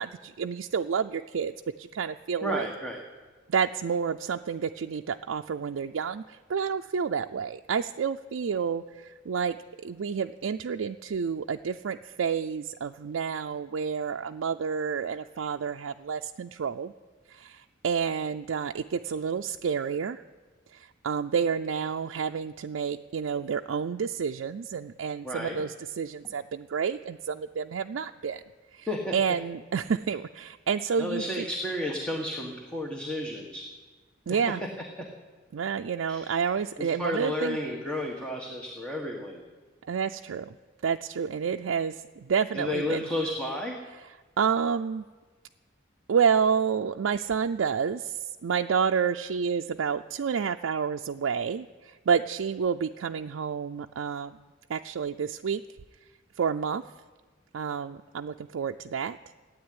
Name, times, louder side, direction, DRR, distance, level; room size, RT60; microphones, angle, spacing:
voice 1, 0.0-2.7 3.5-16.9 17.3-20.2 20.7-28.4 28.7-28.9 29.1-31.5 34.3-34.6 35.5-37.6 39.9-40.5 40.8-43.1 44.0-45.0 46.1-54.4 54.7-55.6 56.4-56.8 57.5-59.2, right 6 dB, 80° right, 4 dB, 0.4 m, -29 dB
voice 2, 2.4-3.0 25.2-25.6 28.9-29.1 31.0-33.7 36.1-36.3 36.8-39.4 42.6-43.8, left 1 dB, 5° left, -1 dB, 1.5 m, -32 dB
16.0 x 8.9 x 9.6 m, 1.4 s
head